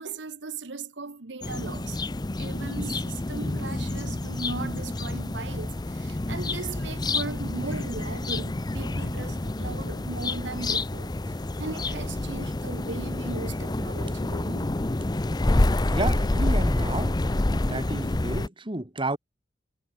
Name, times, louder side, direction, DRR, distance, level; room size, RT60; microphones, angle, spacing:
voice 1, 0.0-2.0 2.4-11.1 11.6-14.7, right 3 dB, 75° right, 1.2 m, -37 dB
sound 1, 1.4-18.5, left 2 dB, 25° left, 0.6 m, -28 dB
voice 2, 15.9-17.2 17.7-19.2, right 2 dB, 30° right, 2.2 m, -30 dB
head